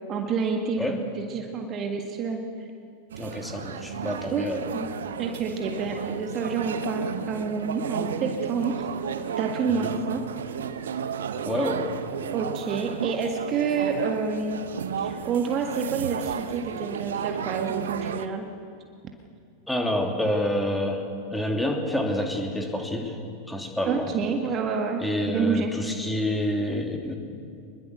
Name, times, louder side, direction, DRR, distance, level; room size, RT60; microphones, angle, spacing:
voice 1, 0.1-2.4 4.3-4.5 4.7-4.9 5.2-8.9 9.4-10.2 12.3-14.6 15.0-18.5 23.8-25.0 25.3-25.7, right 5 dB, 30° right, 4 dB, 1.7 m, -28 dB
sound 1, 3.1-18.3, right 7 dB, 65° right, 1.0 m, -33 dB
voice 2, 3.2-4.7 9.7-9.9 11.4-11.9 19.7-23.2 23.5-24.1 25.0-27.2, left 1 dB, 5° left, 2 dB, 3.0 m, -28 dB
24.5 x 22.0 x 6.6 m, 2.4 s
figure-of-eight pair, 90°, 0 cm